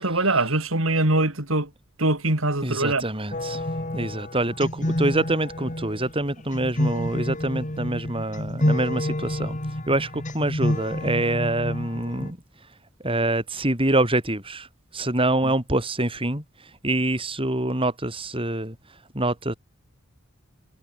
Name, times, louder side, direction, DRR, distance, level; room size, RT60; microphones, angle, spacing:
voice 1, 0.0-1.7 2.0-3.0, right 2 dB, 85° right, 4.6 m, -22 dB
voice 2, 2.6-9.6 9.9-12.4 13.0-14.7 14.9-18.8 19.1-19.5, right 1 dB, 25° right, 7.4 m, -25 dB
sound 1, 3.3-12.3, left 1 dB, 40° left, 3.0 m, -29 dB
head